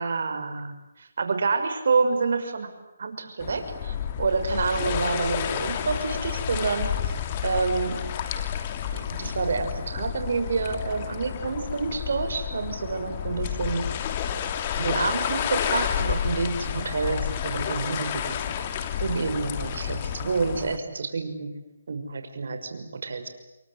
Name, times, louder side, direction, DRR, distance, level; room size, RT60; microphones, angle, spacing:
voice 1, 0.0-2.7 3.0-7.1 7.4-8.1 8.9-13.8 14.8-18.5 19.0-21.5 21.9-23.3, right 4 dB, 65° right, 9 dB, 6.1 m, -28 dB
sound 1, 3.4-20.8, left 9 dB, 30° left, 2.9 m, -30 dB
29.0 x 23.5 x 8.2 m, 0.96 s
hypercardioid pair, 160°, 0 cm